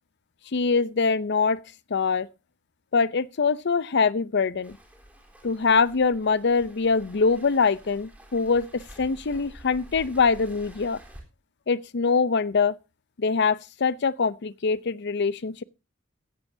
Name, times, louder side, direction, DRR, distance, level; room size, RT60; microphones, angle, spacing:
voice 1, 0.5-1.6 1.9-2.3 2.9-4.8 5.4-11.0 11.7-12.7 13.2-15.6, left 5 dB, 60° left, 0.6 m, -23 dB
Waves surf, 4.6-11.2, right 1 dB, 5° right, 3.6 m, -49 dB
16.0 x 13.5 x 2.7 m
head